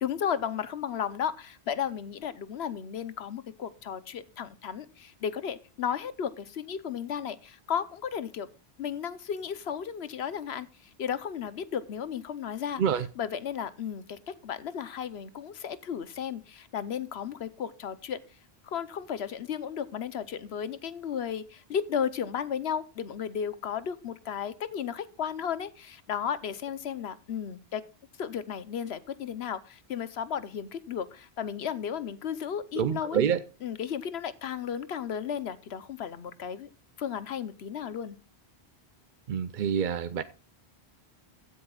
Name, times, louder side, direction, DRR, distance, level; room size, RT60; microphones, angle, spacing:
voice 1, 0.0-8.5 8.8-10.7 11.0-12.8 13.2-18.2 18.6-27.8 28.2-33.2 33.6-36.7 37.0-38.2, left 8 dB, 80° left, 1.1 m, -34 dB
voice 2, 32.7-33.4 39.3-40.2, right 8 dB, 55° right, 0.7 m, -27 dB
15.5 x 9.8 x 2.3 m
omnidirectional pair, 1.1 m